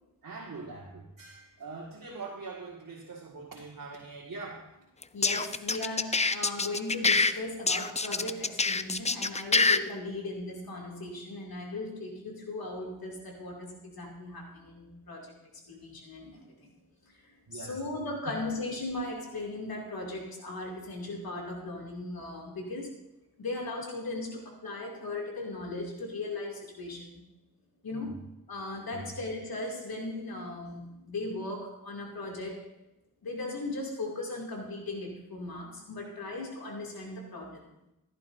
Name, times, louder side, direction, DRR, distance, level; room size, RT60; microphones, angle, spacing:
voice 1, 0.2-4.8 17.5-17.8 27.9-28.1 28.9-29.1, right 3 dB, 65° right, -4 dB, 2.0 m, -43 dB
sound 1, 5.0-7.3 7.7-9.8, left 4 dB, 20° left, 0.4 m, -25 dB
voice 2, 5.1-15.4 15.7-16.7 17.2-22.9 23.4-27.2 27.8-28.2 28.5-32.7 33.2-37.6, left 2 dB, 90° left, -1 dB, 2.7 m, -37 dB
15.0 x 11.0 x 2.7 m, 0.89 s
cardioid pair, 55°, 35 cm